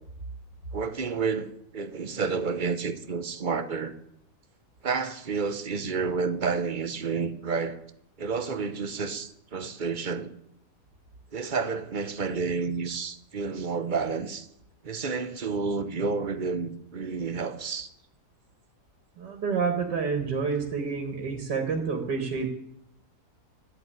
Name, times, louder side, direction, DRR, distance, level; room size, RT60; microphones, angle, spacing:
voice 1, 0.7-3.9 4.8-7.8 8.2-10.3 11.3-14.5 14.8-17.9, right 5 dB, 35° right, 0.9 m, -30 dB
voice 2, 19.2-22.5, right 5 dB, 85° right, 2.3 m, -28 dB
13.5 x 7.7 x 9.7 m
omnidirectional pair, 1.8 m